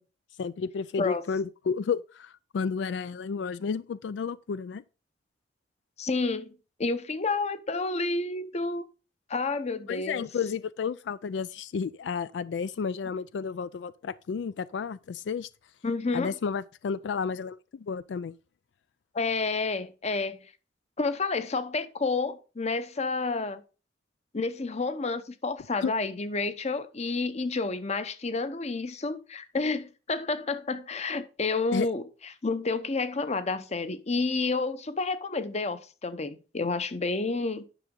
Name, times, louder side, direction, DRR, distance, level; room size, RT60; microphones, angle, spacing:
voice 1, 0.4-4.8 9.9-15.5 16.1-18.3 25.8-25.9 31.7-31.9, left 6 dB, 85° left, 0.4 m, -32 dB
voice 2, 6.0-8.8 9.3-10.3 15.8-16.3 19.1-20.5 21.0-23.6 24.3-32.0 32.4-37.6, left 3 dB, 40° left, 0.8 m, -30 dB
10.0 x 6.1 x 3.7 m
head